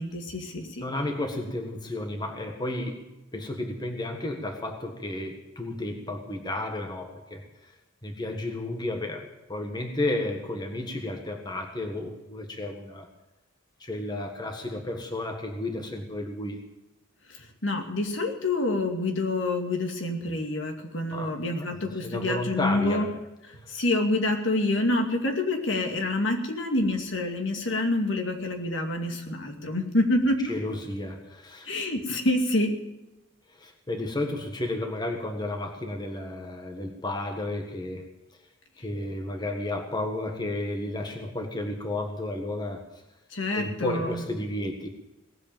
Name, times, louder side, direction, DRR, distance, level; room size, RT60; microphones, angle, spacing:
voice 1, 0.0-0.8 17.3-23.1 23.7-30.5 31.6-32.8 43.3-44.2, left 2 dB, 65° left, 3 dB, 2.4 m, -27 dB
voice 2, 0.8-7.7 8.0-13.1 13.8-16.6 21.1-23.1 30.5-31.7 33.5-38.1 38.8-42.9 43.6-44.9, left 1 dB, 20° left, 3 dB, 1.5 m, -32 dB
18.5 x 8.2 x 9.0 m, 1.0 s
head